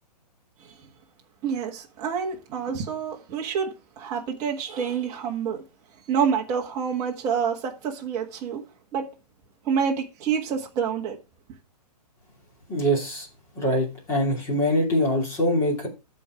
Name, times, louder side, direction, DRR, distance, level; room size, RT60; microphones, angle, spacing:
voice 1, 1.4-5.6 6.1-8.6 8.9-9.1 9.6-11.2, right 7 dB, 15° right, 1.5 m, -27 dB
voice 2, 12.7-13.3 13.5-15.9, equal, 15° left, 2.8 m, -23 dB
13.5 x 4.5 x 4.8 m
hypercardioid pair, 175°, 21 cm